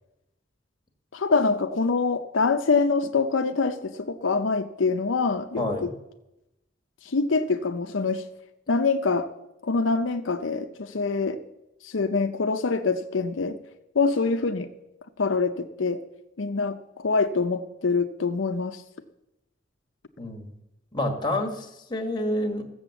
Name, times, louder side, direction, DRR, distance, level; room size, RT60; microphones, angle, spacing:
voice 1, 1.1-5.7 7.0-8.2 8.7-9.3 9.6-11.4 11.8-13.6 13.9-14.7 15.2-16.0 16.4-18.8, left 4 dB, 85° left, 0.7 m, -25 dB
voice 2, 5.6-5.9 20.2-20.6 20.9-22.6, left 1 dB, 25° left, 1.7 m, -28 dB
14.0 x 7.9 x 7.1 m
head